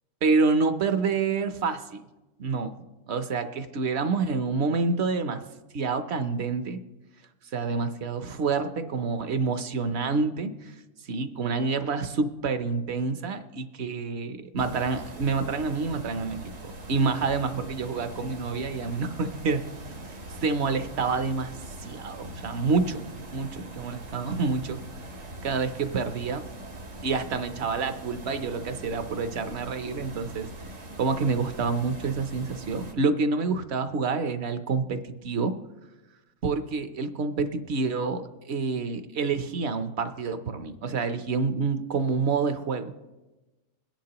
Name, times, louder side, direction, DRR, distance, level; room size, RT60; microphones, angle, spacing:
voice 1, 0.2-2.0 2.4-5.4 5.7-6.8 7.5-10.7 11.0-19.7 20.3-24.8 25.4-26.5 27.0-30.5 31.0-35.6 36.4-42.9, right 4 dB, 60° right, 10 dB, 0.9 m, -28 dB
sound 1, 14.6-32.9, right 1 dB, 75° right, 1.9 m, -42 dB
22.0 x 10.5 x 2.9 m, 1.1 s
omnidirectional pair, 1.4 m